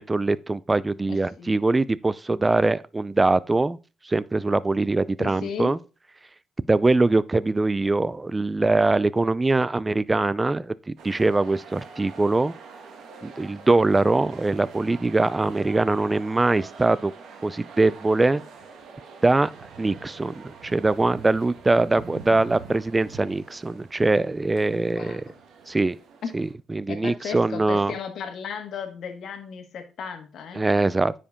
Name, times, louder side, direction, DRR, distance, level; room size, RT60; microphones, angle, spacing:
voice 1, 0.0-3.8 4.1-5.8 6.7-10.7 11.0-12.5 13.2-17.1 17.4-18.4 19.2-19.5 19.8-25.2 25.7-26.0 26.3-27.9 30.5-31.1, right 2 dB, 20° right, 0.4 m, -22 dB
voice 2, 1.1-1.6 5.2-5.8 24.9-25.3 26.2-26.3 26.9-30.7, left 6 dB, 65° left, 1.5 m, -35 dB
sound 1, 11.0-26.5, right 5 dB, 75° right, 1.5 m, -45 dB
9.7 x 5.1 x 3.6 m
cardioid pair, 90°, 0 cm